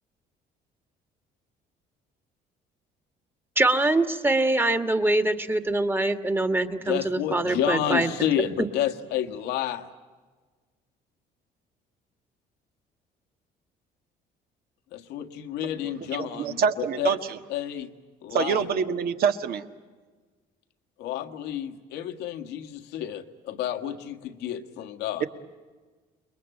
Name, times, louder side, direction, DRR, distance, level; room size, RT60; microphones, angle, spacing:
voice 1, 3.5-8.1, right 2 dB, 10° right, 9 dB, 1.7 m, -24 dB
voice 2, 6.8-9.9 14.9-17.2 17.5-17.9 18.2-18.6 21.0-25.2, left 10 dB, 85° left, 7 dB, 1.7 m, -30 dB
voice 3, 16.2-17.4 18.3-19.6, right 7 dB, 65° right, 8 dB, 1.7 m, -25 dB
28.5 x 22.0 x 9.1 m, 1.4 s
cardioid pair, 110°, 17 cm